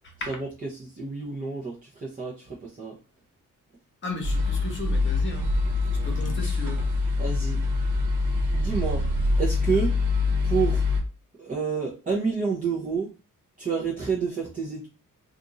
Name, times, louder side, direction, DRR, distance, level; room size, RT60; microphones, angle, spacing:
voice 1, 0.0-0.4 4.0-5.5 6.0-6.8, left 3 dB, 35° left, 4 dB, 1.0 m, -35 dB
voice 2, 0.8-2.9 7.2-7.6 8.5-9.0 9.4-9.9 10.4-10.8 11.4-13.1 13.6-14.9, right 5 dB, 25° right, -5 dB, 0.7 m, -29 dB
sound 1, 4.2-11.0, left 3 dB, 65° right, 1.2 m, -25 dB
2.5 x 2.5 x 3.9 m, 0.34 s
wide cardioid pair, 140°, 33 cm